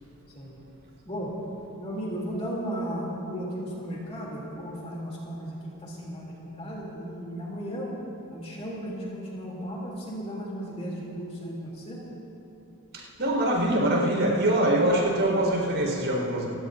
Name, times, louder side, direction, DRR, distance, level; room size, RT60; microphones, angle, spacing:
voice 1, 1.8-7.9 8.3-12.0, equal, 30° left, -4 dB, 3.1 m, -35 dB
voice 2, 12.9-16.5, right 1 dB, 55° right, -2 dB, 4.7 m, -24 dB
29.0 x 16.0 x 2.7 m, 3.0 s
head